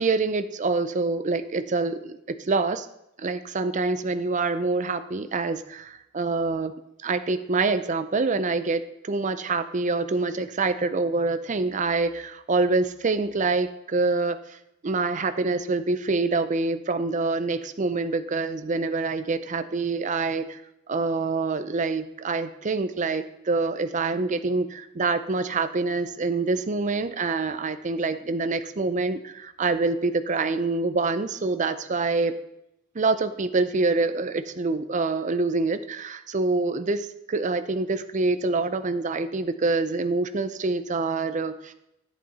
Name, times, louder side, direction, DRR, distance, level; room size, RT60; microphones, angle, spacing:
voice 1, 0.0-2.9 3.2-6.7 7.0-14.6 14.8-20.6 20.9-32.3 32.9-41.7, right 3 dB, 40° right, 11 dB, 0.5 m, -26 dB
10.5 x 9.3 x 4.1 m, 0.83 s
head